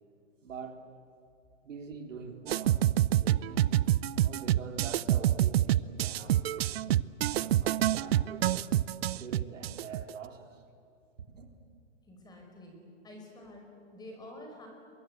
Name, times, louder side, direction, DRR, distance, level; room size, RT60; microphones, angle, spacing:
voice 1, 0.4-0.9 1.6-2.8 3.1-3.9 4.2-6.8 7.3-8.8 9.1-10.6 11.3-11.5, right 5 dB, 85° right, 4 dB, 3.8 m, -45 dB
sound 1, 2.5-10.1, right 13 dB, 55° right, 0.7 m, -26 dB
voice 2, 12.0-12.7 13.0-14.7, left 1 dB, 10° left, 2 dB, 5.2 m, -48 dB
29.5 x 23.0 x 8.1 m, 2.5 s
hypercardioid pair, 150°, 37 cm